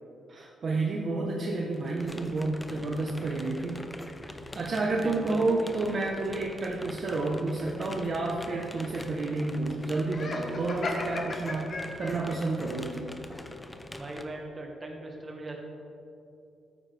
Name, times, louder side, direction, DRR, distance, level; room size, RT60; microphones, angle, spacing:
voice 1, 0.3-3.8 4.5-13.3, right 2 dB, 45° right, -1 dB, 0.9 m, -30 dB
sound 1, 1.7-14.2, left 1 dB, 10° left, 0.6 m, -44 dB
voice 2, 3.0-3.4 5.0-5.8 13.9-15.6, right 2 dB, 20° right, 0 dB, 1.6 m, -40 dB
Laughter, 10.1-12.4, left 2 dB, 45° left, 1.2 m, -35 dB
13.0 x 9.1 x 3.4 m, 2.7 s
cardioid pair, 125°, 0 cm